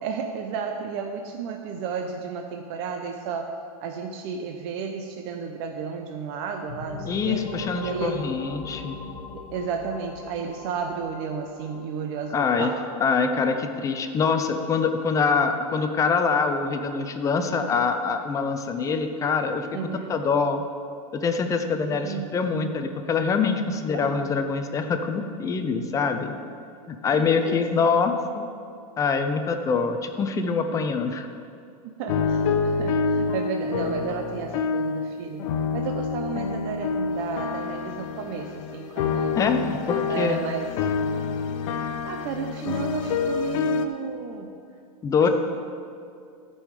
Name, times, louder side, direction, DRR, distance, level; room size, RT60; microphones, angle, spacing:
voice 1, 0.0-3.5 3.8-7.5 7.8-8.4 9.5-12.8 19.7-20.2 21.9-22.3 23.9-24.1 27.1-27.6 30.7-30.9 31.8-35.5 35.7-39.4 40.0-40.7 41.8-44.5, right 6 dB, 45° right, 4 dB, 0.7 m, -32 dB
sound 1, 6.7-16.2, left 4 dB, 80° left, 1.5 m, -41 dB
voice 2, 7.1-8.9 12.3-12.7 13.0-19.8 20.1-20.6 21.1-26.3 26.9-28.5 29.0-31.3 39.3-40.4 45.0-45.3, left 5 dB, 15° left, 7 dB, 0.6 m, -24 dB
sound 2, 32.1-35.1 35.4-43.9, left 5 dB, 60° left, 0.7 m, -27 dB
13.5 x 5.5 x 5.0 m, 2.4 s
supercardioid pair, 145°, 19 cm